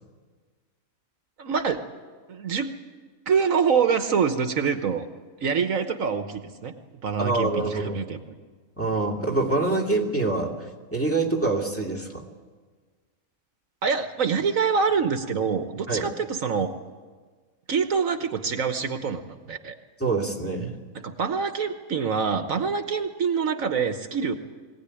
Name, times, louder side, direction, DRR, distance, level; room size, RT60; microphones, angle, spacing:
voice 1, 1.4-1.8 2.3-2.7 3.3-5.1 5.4-6.7 7.0-8.2 13.8-16.7 17.7-19.8 21.0-24.3, right 6 dB, 70° right, 8 dB, 1.5 m, -25 dB
voice 2, 7.2-8.0 8.8-12.2 15.9-16.1 20.0-20.8, right 3 dB, 10° left, -3 dB, 2.6 m, -25 dB
22.0 x 17.0 x 9.9 m, 1.5 s
omnidirectional pair, 1.5 m